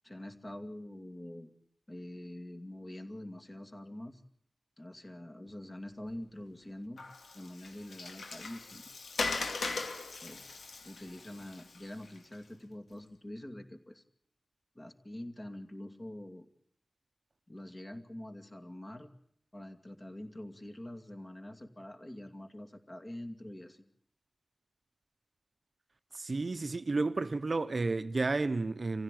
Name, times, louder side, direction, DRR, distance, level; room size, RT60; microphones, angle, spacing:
voice 1, 0.0-1.5 1.9-4.2 4.8-7.0 7.3-8.8 10.2-10.5 10.8-14.0 14.7-16.4 17.5-19.1 19.5-23.9, left 1 dB, 25° left, 2.4 m, -45 dB
Water, 7.0-12.3, left 3 dB, 85° left, 2.7 m, -39 dB
voice 2, 26.1-29.0, right 3 dB, 45° right, 0.9 m, -32 dB
26.0 x 15.5 x 9.1 m
wide cardioid pair, 115°, 0 cm